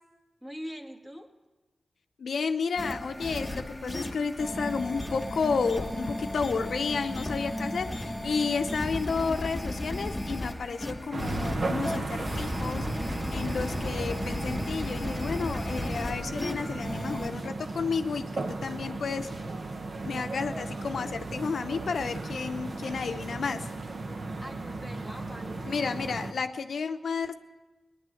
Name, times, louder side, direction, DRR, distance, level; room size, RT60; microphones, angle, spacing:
voice 1, 0.4-1.3 24.4-25.7, equal, 15° right, 4 dB, 1.8 m, -42 dB
voice 2, 2.2-19.3 20.0-23.7 25.6-27.3, left 5 dB, 80° left, 8 dB, 0.7 m, -32 dB
sound 1, 2.8-17.3, left 1 dB, 10° left, 1.2 m, -34 dB
sound 2, 11.1-26.3, right 2 dB, 55° right, 1.1 m, -36 dB
18.0 x 10.5 x 7.7 m, 1.2 s
cardioid pair, 70°, 0 cm